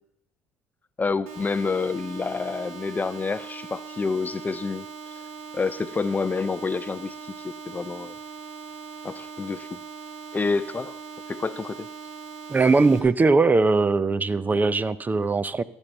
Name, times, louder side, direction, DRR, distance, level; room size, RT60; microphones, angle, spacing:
voice 1, 1.0-4.9 5.1-5.2 5.5-8.1 9.0-9.8 10.3-11.0 11.3-11.9, left 4 dB, 25° left, 16 dB, 0.5 m, -28 dB
sound 1, 1.3-13.0, right 5 dB, 85° right, 2.2 m, -40 dB
voice 2, 12.5-15.6, right 3 dB, 25° right, 18 dB, 0.7 m, -20 dB
16.5 x 7.2 x 6.7 m, 0.78 s
hypercardioid pair, 60°, 7 cm